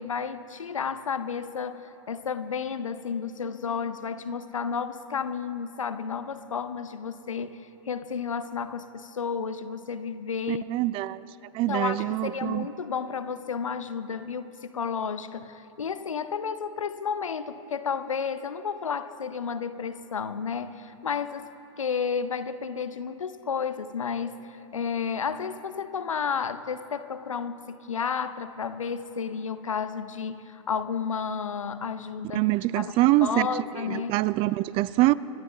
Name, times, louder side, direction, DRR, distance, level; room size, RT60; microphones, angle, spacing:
voice 1, 0.0-10.6 11.7-32.5 32.8-32.9 33.2-34.2, left 6 dB, 90° left, 12 dB, 0.6 m, -32 dB
sound 1, 3.3-5.9, left 3 dB, 5° right, 3.0 m, -57 dB
voice 2, 10.5-11.3 11.5-12.7 32.3-33.5 33.9-35.1, right 18 dB, 35° right, 19 dB, 0.3 m, -24 dB
25.5 x 11.5 x 3.9 m, 3.0 s
hypercardioid pair, 100°, 16 cm